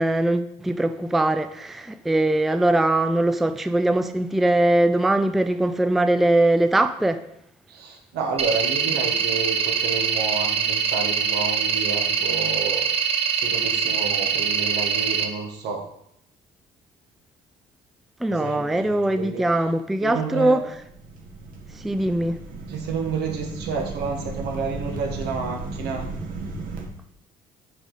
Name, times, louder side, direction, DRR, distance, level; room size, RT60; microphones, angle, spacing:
voice 1, 0.0-7.2 18.2-20.6 21.8-22.4, right 1 dB, ahead, 0.3 m, -21 dB
voice 2, 7.7-15.8 18.3-19.4 20.0-20.6 22.7-26.1, right 4 dB, 80° right, 1.5 m, -30 dB
sound 1, 8.4-15.2, right 6 dB, 35° right, 0.8 m, -23 dB
sound 2, 20.6-26.9, right 3 dB, 55° right, 1.6 m, -35 dB
7.5 x 4.7 x 4.1 m
cardioid pair, 110°, 17 cm